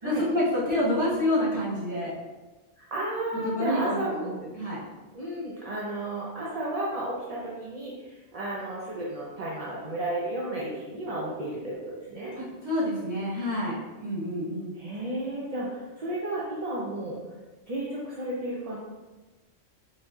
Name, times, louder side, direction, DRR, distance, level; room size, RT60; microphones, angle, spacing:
voice 1, 0.0-2.1 3.4-4.3 4.5-4.8 12.4-13.7 14.0-14.7, left 1 dB, 15° right, -9 dB, 1.3 m, -28 dB
voice 2, 2.8-4.4 5.1-12.3 14.7-17.2 17.7-18.8, right 1 dB, 45° right, -6 dB, 0.5 m, -33 dB
4.0 x 3.5 x 2.3 m, 1.2 s
omnidirectional pair, 1.2 m